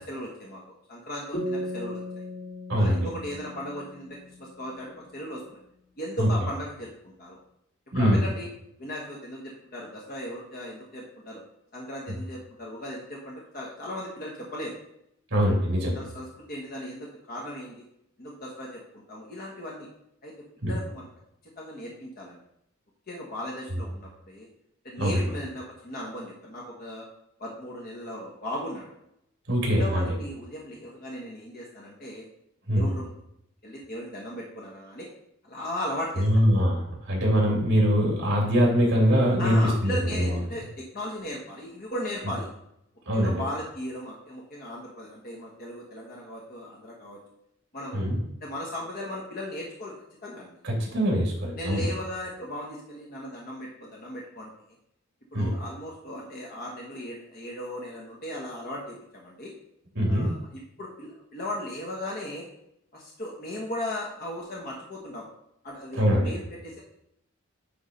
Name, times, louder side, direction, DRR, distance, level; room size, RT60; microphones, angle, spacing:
voice 1, 0.0-2.2 2.7-5.6 6.0-7.4 7.9-8.5 8.8-11.4 11.7-14.7 15.9-17.8 18.2-19.9 20.2-20.3 20.6-21.1 21.6-22.4 23.1-24.5 24.8-27.1 27.4-28.9 29.7-32.2 32.7-33.1 33.6-35.1 35.4-36.2 39.4-42.5 43.1-47.2 47.7-48.1 48.4-49.9 50.2-50.5 51.6-54.5 55.3-59.5 60.1-60.5 60.8-62.5 62.9-65.2 65.6-66.8, left 1 dB, 45° left, -3 dB, 1.3 m, -37 dB
sound 1, 1.3-4.8, equal, 75° left, 3.0 m, -36 dB
voice 2, 2.7-3.1 6.2-6.3 7.9-8.2 15.3-16.0 20.6-20.8 25.0-25.3 29.5-30.1 32.7-32.9 36.2-40.4 43.1-43.4 47.9-48.2 50.6-51.9 55.3-55.5 59.9-60.3 66.0-66.4, equal, 60° right, -2 dB, 2.6 m, -23 dB
9.6 x 3.6 x 5.2 m, 0.78 s
head